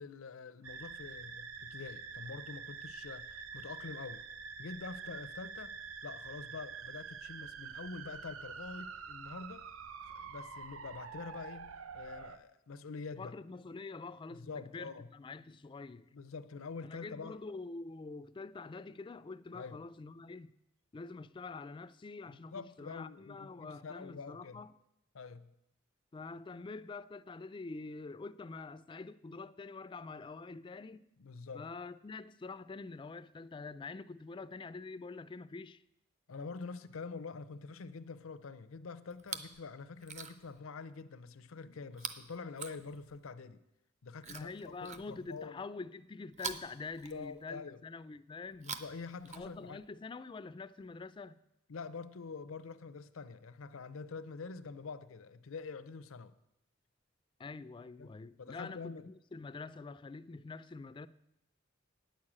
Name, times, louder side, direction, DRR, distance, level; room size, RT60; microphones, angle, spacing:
voice 1, 0.0-4.2 4.6-5.8 6.0-9.7 10.0-13.4 14.3-15.1 15.5-15.6 16.1-17.4 19.5-19.8 22.3-24.6 25.1-25.5 31.2-31.7 36.3-43.6 44.0-45.6 47.1-47.8 48.6-49.8 51.7-56.3 58.0-58.1 58.4-59.1, left 4 dB, 85° left, 0.6 m, -46 dB
sound 1, 0.6-12.4, right 5 dB, 85° right, 0.7 m, -46 dB
voice 2, 13.2-16.1 16.8-20.5 20.9-24.7 26.1-31.1 31.5-35.8 44.3-48.7 49.3-51.4 57.4-61.1, left 3 dB, 25° left, 0.3 m, -46 dB
Chewing mastication, 39.1-39.6 40.0-40.6 41.9-43.3 44.2-45.5 46.3-47.6 48.5-49.9 50.8-50.9, right 5 dB, 35° right, 0.6 m, -46 dB
9.3 x 6.4 x 8.6 m
head